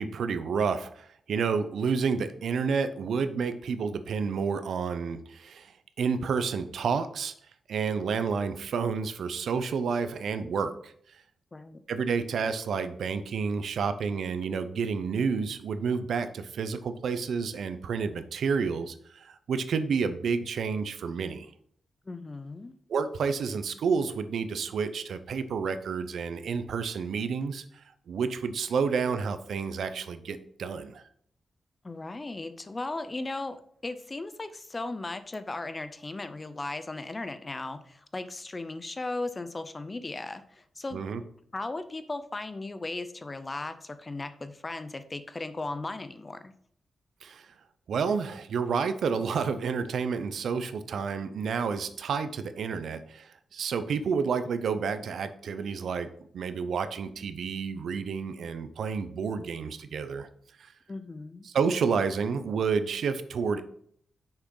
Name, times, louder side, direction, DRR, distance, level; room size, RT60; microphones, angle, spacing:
voice 1, 0.0-5.7 6.0-7.3 7.7-10.9 11.9-21.5 22.9-27.6 28.1-31.0 40.9-41.2 47.2-47.4 47.9-56.1 56.3-60.3 61.5-63.6, right 5 dB, 80° right, 11 dB, 0.6 m, -30 dB
voice 2, 11.5-11.8 22.1-22.7 31.8-41.0 41.5-46.5 60.9-61.5, left 2 dB, 25° left, 11 dB, 0.6 m, -37 dB
6.4 x 6.0 x 3.9 m, 0.63 s
wide cardioid pair, 120°, 0 cm